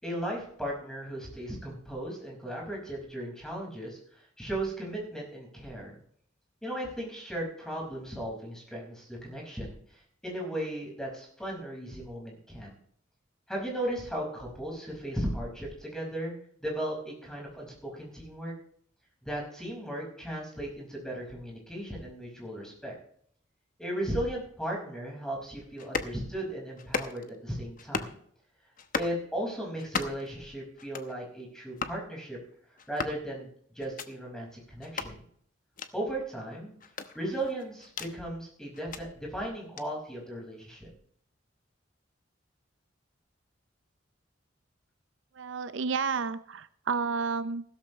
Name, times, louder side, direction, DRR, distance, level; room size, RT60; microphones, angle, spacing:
voice 1, 0.0-6.0 6.6-12.7 13.5-16.3 16.6-18.5 19.2-22.9 23.8-28.1 28.9-32.4 32.9-33.5 33.7-35.2 35.9-36.7 37.1-40.9, right 1 dB, 5° left, -1 dB, 5.3 m, -36 dB
sound 1, 25.8-26.2 26.8-27.4 27.8-28.2 28.8-29.2 29.8-30.3 30.8-31.1 31.8-32.0 32.8-33.2 33.8-34.1 34.8-35.1 35.8-35.9 36.8-38.1 38.7-39.0 39.8-39.9, left 5 dB, 45° left, 1.0 m, -35 dB
voice 2, 45.4-47.6, right 5 dB, 75° right, 13 dB, 0.6 m, -31 dB
15.5 x 13.5 x 3.2 m, 0.63 s
head